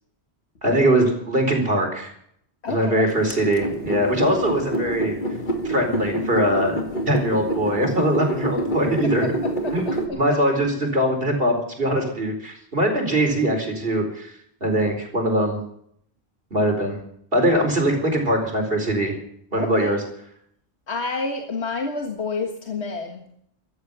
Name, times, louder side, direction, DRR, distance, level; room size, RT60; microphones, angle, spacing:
voice 1, 0.6-2.1 2.7-5.1 5.6-6.8 7.1-9.3 9.7-9.9 10.1-14.3 14.6-15.6 16.5-17.0 17.3-19.2 19.5-20.0, right 1 dB, 60° right, 3 dB, 4.6 m, -22 dB
voice 2, 2.6-3.1 9.6-10.2 19.6-19.9 20.9-23.2, left 3 dB, 85° left, 3 dB, 2.0 m, -29 dB
sound 1, 3.3-10.1, right 1 dB, 50° left, 2.2 m, -27 dB
14.5 x 13.5 x 6.9 m, 0.68 s
omnidirectional pair, 1.1 m